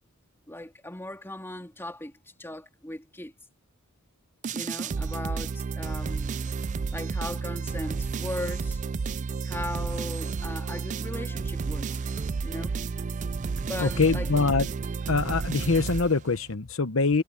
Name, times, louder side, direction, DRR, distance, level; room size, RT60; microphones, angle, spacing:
voice 1, 0.5-3.3 4.5-6.4 6.9-8.8 9.4-12.0 12.4-12.8 13.7-14.3, left 1 dB, 10° left, 2.8 m, -38 dB
sound 1, 4.4-16.5, right 4 dB, 35° right, 0.3 m, -31 dB
voice 2, 13.8-14.7 15.1-17.2, left 4 dB, 70° left, 1.0 m, -24 dB
head